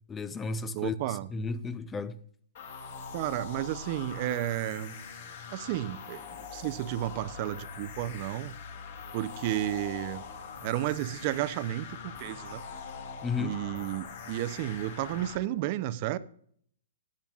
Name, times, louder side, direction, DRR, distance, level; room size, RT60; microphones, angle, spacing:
voice 1, 0.1-2.2 13.2-13.5, left 4 dB, 10° left, 0.4 m, -33 dB
voice 2, 0.7-1.3 3.1-4.9 5.5-6.2 6.5-8.5 9.1-10.2 10.6-12.6 13.4-16.2, right 14 dB, 35° right, 0.5 m, -32 dB
sound 1, 2.5-15.4, left 6 dB, 50° left, 2.8 m, -43 dB
16.0 x 10.0 x 2.4 m
hypercardioid pair, 160°, 0 cm